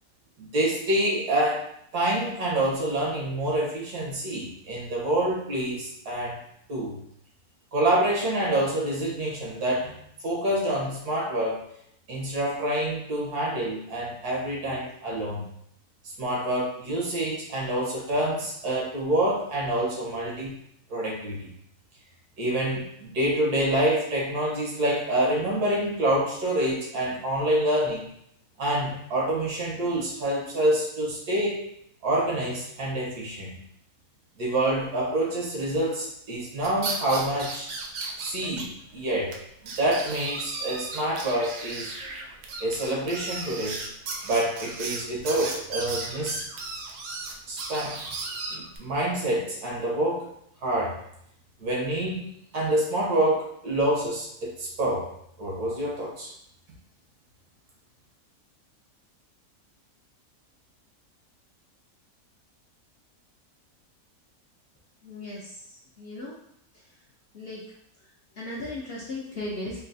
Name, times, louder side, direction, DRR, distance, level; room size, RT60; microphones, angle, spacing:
voice 1, 0.4-6.4 6.7-7.0 7.7-11.6 12.1-15.4 16.2-20.5 20.9-21.5 22.4-28.1 28.6-31.7 32.0-33.6 34.4-37.7 38.2-39.4 39.6-41.9 42.6-43.8 44.2-46.4 47.5-48.0 48.5-50.3 50.6-51.0 51.6-52.3 52.5-55.1 55.4-56.3, right 1 dB, 90° right, -3 dB, 1.6 m, -27 dB
sound 1, 36.6-38.6 38.9-39.0 39.3-39.4 39.7-48.8, right 3 dB, 65° right, 0.8 m, -35 dB
voice 2, 65.0-65.6 66.0-66.4 67.3-67.6 68.3-69.8, left 2 dB, 60° left, -5 dB, 0.6 m, -36 dB
4.0 x 2.2 x 2.6 m, 0.72 s
omnidirectional pair, 1.6 m